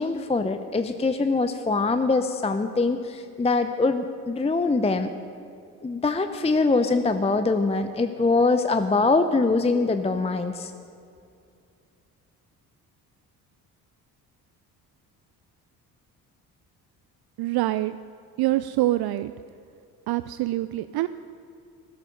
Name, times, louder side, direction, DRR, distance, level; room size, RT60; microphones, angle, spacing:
voice 1, 0.0-5.1 5.8-10.7, left 3 dB, 15° left, 9 dB, 0.7 m, -23 dB
voice 2, 17.4-18.0 18.4-19.3 20.1-21.1, right 16 dB, 55° right, 13 dB, 0.5 m, -25 dB
14.5 x 12.5 x 5.4 m, 2.4 s
hypercardioid pair, 45°, 48 cm